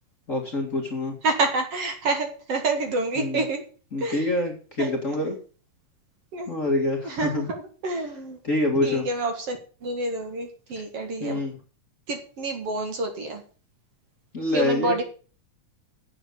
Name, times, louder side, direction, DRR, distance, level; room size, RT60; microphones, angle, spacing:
voice 1, 0.3-1.2 3.2-3.4 3.9-5.4 6.5-7.4 8.4-9.1 11.2-11.6 14.3-15.0, left 2 dB, 30° left, 1 dB, 2.1 m, -26 dB
voice 2, 1.2-3.6 4.0-4.3 4.8-5.3 6.3-6.7 7.0-8.4 8.8-11.4 12.1-13.4 14.5-15.0, right 2 dB, 50° right, 4 dB, 2.6 m, -28 dB
8.7 x 8.3 x 8.4 m, 0.39 s
omnidirectional pair, 3.6 m